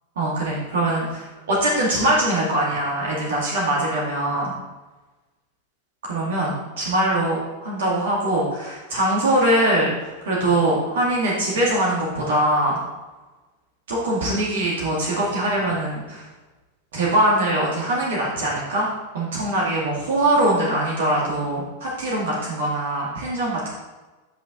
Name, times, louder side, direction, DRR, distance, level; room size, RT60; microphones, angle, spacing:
voice 1, 0.2-4.5 6.0-12.8 13.9-16.3 16.9-18.9 19.1-23.7, right 1 dB, 60° right, -4 dB, 2.1 m, -22 dB
10.0 x 5.4 x 3.9 m, 1.2 s
figure-of-eight pair, 90°, 0 cm